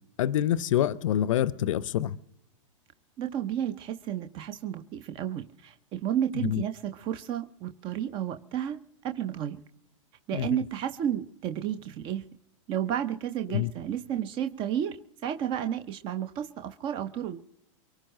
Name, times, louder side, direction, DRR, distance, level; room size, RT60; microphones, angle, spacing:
voice 1, 0.2-2.2 6.4-6.6 10.3-10.6 13.5-13.7, left 11 dB, 75° left, 0.5 m, -26 dB
voice 2, 3.2-9.6 10.3-12.2 12.7-15.0 15.2-17.5, right 10 dB, 30° right, 0.5 m, -32 dB
22.5 x 9.0 x 6.4 m
hypercardioid pair, 140°, 17 cm